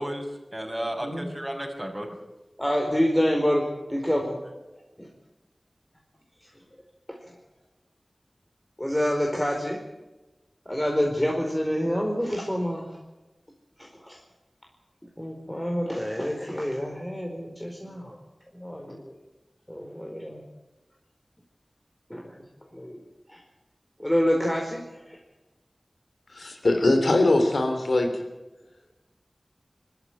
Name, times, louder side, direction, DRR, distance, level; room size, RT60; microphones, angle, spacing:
voice 1, 0.0-2.1 4.4-4.5, equal, 15° right, 1 dB, 6.8 m, -33 dB
voice 2, 2.6-4.4 5.0-5.1 7.1-7.2 8.8-9.8 10.7-12.9 13.8-14.2 15.2-18.2 18.5-19.1 19.7-20.4 22.1-22.3 22.7-23.0 23.3-23.4 24.0-25.2, equal, 15° left, 1 dB, 4.5 m, -27 dB
voice 3, 26.3-28.2, left 2 dB, 90° left, 6 dB, 3.3 m, -22 dB
23.0 x 13.5 x 9.3 m, 1.1 s
wide cardioid pair, 40°, 0 cm